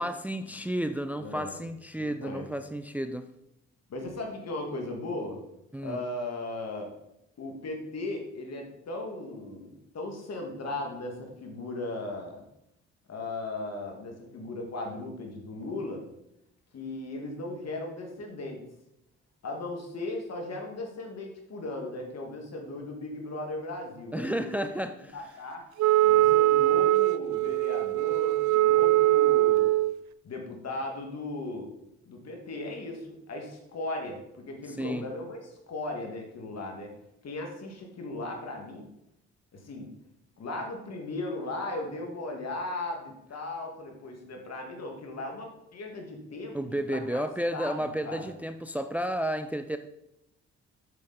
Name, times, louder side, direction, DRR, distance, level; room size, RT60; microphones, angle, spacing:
voice 1, 0.0-3.3 5.7-6.0 24.1-25.2 34.7-35.0 46.5-49.8, equal, 5° right, 9 dB, 0.5 m, -32 dB
voice 2, 1.2-1.7 2.0-2.5 3.9-5.4 5.8-6.9 7.4-12.4 13.1-16.0 16.7-18.6 19.4-24.7 25.1-25.6 26.0-29.7 30.2-31.7 32.1-36.9 37.2-38.9 39.5-39.9 40.4-47.2 47.5-48.3, left 2 dB, 55° left, 2 dB, 2.3 m, -37 dB
Wind instrument woodwind instrument, 25.8-29.9, right 15 dB, 70° right, 0.4 m, -22 dB
8.1 x 6.6 x 4.3 m, 0.83 s
supercardioid pair, 55°, 30 cm